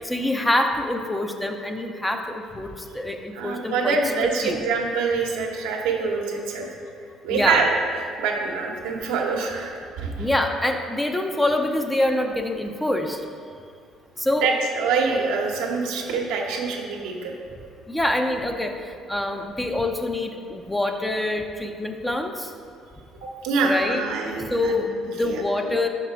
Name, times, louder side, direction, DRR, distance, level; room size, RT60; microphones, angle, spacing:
voice 1, 0.0-2.7 2.9-4.0 4.4-4.6 7.3-7.6 10.2-13.2 14.2-14.5 17.9-18.7 19.1-22.5 23.6-24.0 24.5-24.9 25.2-25.9, left 1 dB, 10° left, 4 dB, 0.5 m, -25 dB
voice 2, 3.3-6.7 7.2-9.7 10.0-10.3 14.4-17.3 23.2-25.7, right 4 dB, 85° right, 0 dB, 0.9 m, -25 dB
5.8 x 5.2 x 4.4 m, 2.3 s
supercardioid pair, 90°, 0 cm